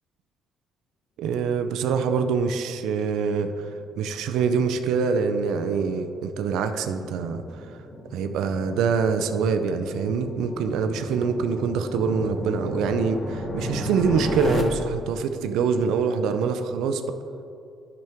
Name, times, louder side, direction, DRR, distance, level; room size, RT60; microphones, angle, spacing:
voice 1, 1.2-7.5 8.1-17.0, right 5 dB, 85° right, 8 dB, 0.5 m, -25 dB
sound 1, 3.6-14.6, left 1 dB, 40° left, 0.9 m, -35 dB
9.4 x 6.0 x 3.5 m, 2.6 s
cardioid pair, 110°, 0 cm